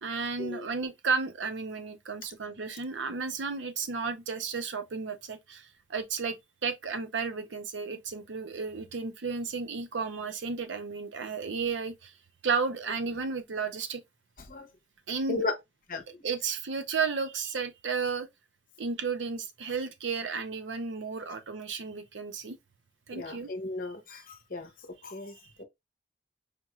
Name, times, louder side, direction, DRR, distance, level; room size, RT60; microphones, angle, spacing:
voice 1, 0.0-12.1 12.4-14.0 15.1-15.4 16.2-18.3 18.8-22.6 23.1-23.5, right 5 dB, 85° right, 0.6 m, -33 dB
voice 2, 15.9-16.2 23.1-24.7 25.0-25.3 25.6-25.7, left 3 dB, 50° left, 0.8 m, -35 dB
5.0 x 2.4 x 2.9 m
head